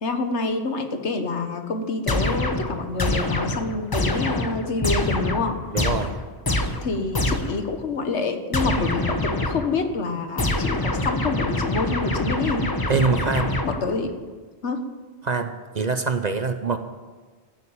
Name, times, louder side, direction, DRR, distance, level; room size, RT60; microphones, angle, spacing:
voice 1, 0.0-5.6 6.8-12.7 13.6-14.1 14.6-14.8, left 3 dB, 75° left, 7 dB, 1.6 m, -27 dB
sound 1, 2.1-7.7 8.5-9.8 10.4-14.1, left 1 dB, 20° left, 0.8 m, -25 dB
voice 2, 5.7-6.1 12.9-13.5 15.2-16.8, right 4 dB, 45° right, 8 dB, 0.7 m, -24 dB
14.5 x 8.8 x 8.8 m, 1.4 s
omnidirectional pair, 1.2 m